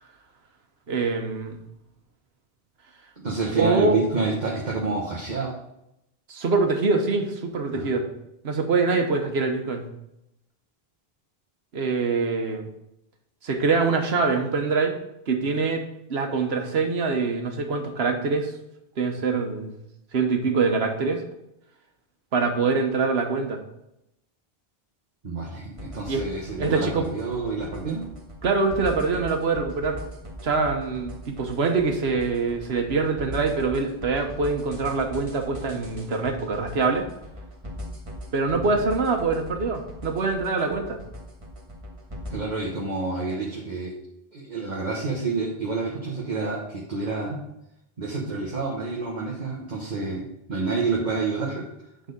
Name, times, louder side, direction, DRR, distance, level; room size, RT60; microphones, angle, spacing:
voice 1, 0.9-1.6 3.5-4.0 6.3-8.0 8.4-9.9 11.7-12.7 13.4-14.9 15.3-15.8 16.1-18.5 19.0-19.8 20.1-21.2 22.3-23.6 26.1-26.2 26.6-27.1 28.4-30.0 30.4-37.1 38.3-41.0, right 4 dB, 90° right, 4 dB, 1.3 m, -24 dB
voice 2, 3.2-5.5 7.7-7.9 25.2-28.0 38.5-38.7 42.3-43.9 44.3-47.4 48.0-50.2 50.5-51.7, right 3 dB, 45° right, -3 dB, 1.4 m, -28 dB
sound 1, 25.8-42.3, left 1 dB, 30° right, 1.7 m, -39 dB
9.0 x 4.0 x 5.2 m, 0.83 s
omnidirectional pair, 1.0 m